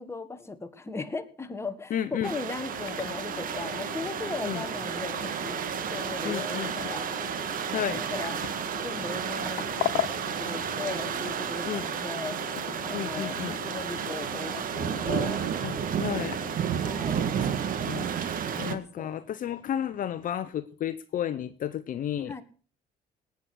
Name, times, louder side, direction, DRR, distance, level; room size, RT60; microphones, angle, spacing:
voice 1, 0.0-5.6 5.9-7.0 7.9-8.5 8.8-10.0 10.2-12.4 12.8-15.4 16.8-17.2 18.4-19.1 22.3-22.4, left 3 dB, 15° left, 8 dB, 1.8 m, -38 dB
voice 2, 1.9-2.3 4.4-4.6 6.2-6.9 7.7-8.0 11.6-11.9 12.9-13.6 15.6-15.7 16.0-16.4 17.3-17.4 17.8-18.1 18.6-22.3, left 10 dB, 55° left, 12 dB, 0.9 m, -32 dB
sound 1, 2.2-18.7, right 8 dB, 55° right, 1.6 m, -32 dB
sound 2, 2.7-16.6, left 15 dB, 85° left, 1.3 m, -39 dB
18.5 x 9.6 x 6.4 m, 0.40 s
cardioid pair, 110°, 17 cm